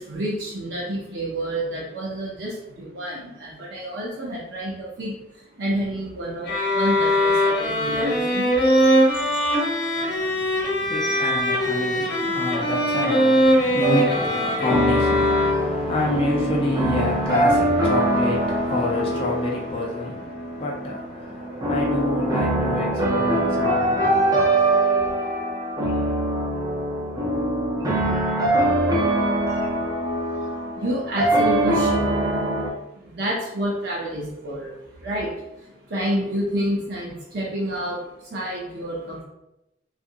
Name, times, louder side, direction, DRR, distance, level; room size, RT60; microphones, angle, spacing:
voice 1, 0.0-9.3 10.5-10.7 11.0-11.2 29.5-29.8 30.4-30.5 30.7-32.4 32.9-39.2, right 1 dB, 65° right, 0.5 m, -29 dB
sound 1, 6.4-15.9, equal, 65° left, 1.1 m, -21 dB
voice 2, 9.9-24.2, left 2 dB, 35° left, 0.4 m, -28 dB
sound 2, 13.8-32.7, right 1 dB, 20° right, 0.5 m, -23 dB
2.7 x 2.4 x 2.5 m
head